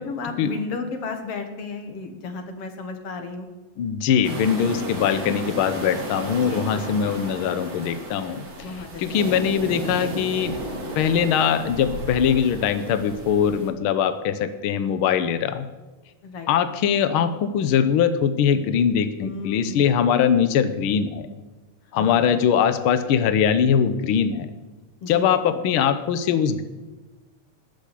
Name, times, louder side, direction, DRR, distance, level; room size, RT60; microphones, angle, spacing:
voice 1, 0.0-3.5 5.1-5.7 6.5-7.1 8.6-9.6 16.2-16.5 19.2-20.1 21.9-22.4 25.0-25.6, left 4 dB, 55° left, 6 dB, 2.4 m, -34 dB
voice 2, 3.8-8.4 9.0-10.6 11.0-15.7 16.5-21.3 21.9-24.5 25.1-26.6, left 8 dB, 80° left, 11 dB, 1.2 m, -21 dB
sound 1, 4.2-13.7, right 1 dB, 55° right, 4.3 m, -34 dB
19.5 x 6.6 x 8.4 m, 1.2 s
omnidirectional pair, 3.4 m